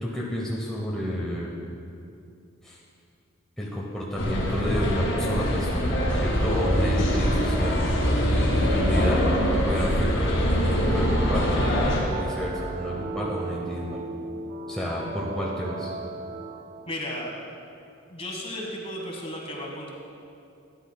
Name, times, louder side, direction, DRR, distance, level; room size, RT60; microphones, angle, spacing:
voice 1, 0.0-1.5 2.6-2.8 3.6-7.8 8.7-9.3 9.6-10.4 10.8-11.5 12.0-14.0 14.7-15.9, equal, 5° left, -5 dB, 0.8 m, -31 dB
sound 1, 4.2-12.0, equal, 85° left, 1.9 m, -23 dB
sound 2, 8.5-17.1, right 4 dB, 45° right, 0.3 m, -36 dB
voice 2, 16.9-17.3 18.1-19.9, left 1 dB, 30° left, 0 dB, 1.2 m, -34 dB
11.5 x 9.7 x 2.2 m, 2.5 s
head